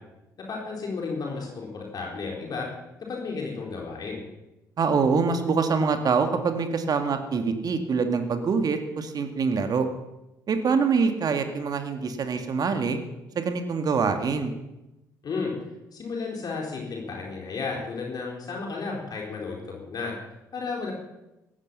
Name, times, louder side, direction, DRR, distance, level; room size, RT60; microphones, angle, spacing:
voice 1, 0.5-2.7 3.1-4.2 15.2-15.5 15.9-20.1 20.5-20.9, left 4 dB, 45° left, -1 dB, 4.4 m, -33 dB
voice 2, 4.8-9.9 10.5-13.0 13.4-14.5, right 5 dB, 45° right, 7 dB, 2.1 m, -25 dB
17.5 x 15.0 x 5.6 m, 0.95 s
figure-of-eight pair, 50°, 9 cm